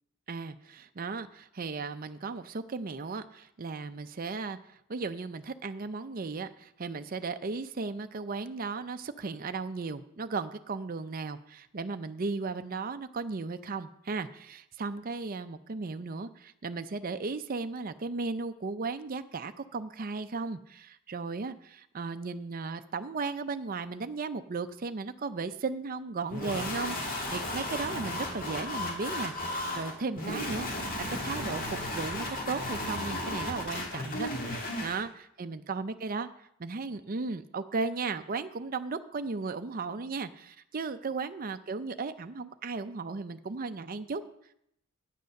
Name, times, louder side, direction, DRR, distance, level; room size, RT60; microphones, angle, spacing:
voice 1, 0.3-30.9 31.2-36.3 36.6-44.2, right 4 dB, 40° right, 9 dB, 0.5 m, -36 dB
sound 1, 26.3-35.0, left 1 dB, 40° left, 2.1 m, -34 dB
9.2 x 8.1 x 6.5 m, 0.74 s
head